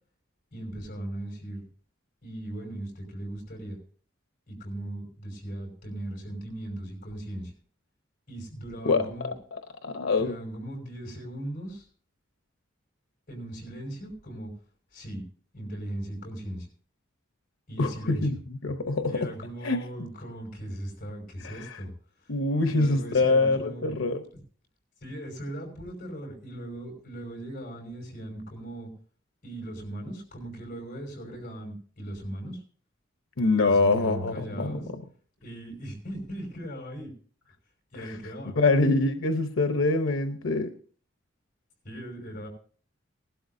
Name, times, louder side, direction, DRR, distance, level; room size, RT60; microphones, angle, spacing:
voice 1, 0.5-1.7 2.2-3.8 4.5-7.5 8.3-9.3 10.2-11.9 13.3-14.5 14.9-15.2 15.5-16.7 17.7-18.3 19.1-21.9 22.2-22.3 22.7-24.0 25.0-28.9 29.4-32.6 33.6-34.9 35.4-37.1 37.9-38.6 41.8-42.5, right 1 dB, 40° left, 2 dB, 5.5 m, -38 dB
voice 2, 8.8-9.3 9.8-10.3 17.8-18.4 18.6-19.3 19.6-19.8 21.4-21.8 22.3-24.2 33.4-34.8 38.0-38.2 38.6-40.7, left 3 dB, 85° left, 7 dB, 0.8 m, -25 dB
19.5 x 12.5 x 2.7 m, 0.43 s
head